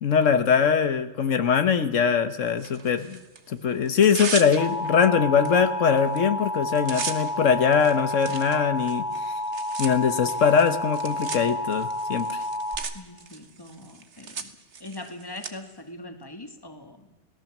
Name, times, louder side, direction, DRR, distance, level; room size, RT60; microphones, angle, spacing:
voice 1, 0.0-3.2 3.5-9.3 9.8-12.4, left 6 dB, 80° left, 10 dB, 1.5 m, -22 dB
Tearing, 2.6-3.4 3.9-4.9 5.5-5.6 5.9-6.2 6.5-15.5, right 5 dB, 65° right, 1.7 m, -37 dB
Alarm, 4.6-12.8, left 1 dB, 20° right, 3.0 m, -30 dB
voice 2, 12.9-14.5 14.8-17.1, left 2 dB, 20° left, 6 dB, 2.0 m, -41 dB
27.0 x 18.0 x 7.3 m, 1.0 s
omnidirectional pair, 1.3 m